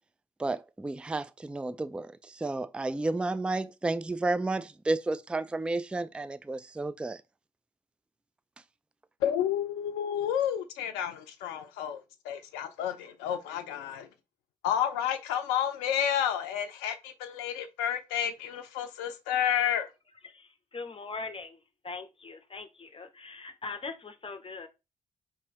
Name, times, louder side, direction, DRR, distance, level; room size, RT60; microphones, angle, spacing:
voice 1, 0.4-7.2, right 2 dB, 5° right, 0.3 m, -32 dB
voice 2, 9.2-14.1 14.6-19.9, left 9 dB, 80° left, 0.4 m, -30 dB
voice 3, 20.2-24.7, left 4 dB, 30° left, 0.6 m, -41 dB
4.6 x 2.9 x 2.8 m
hypercardioid pair, 40°, 17 cm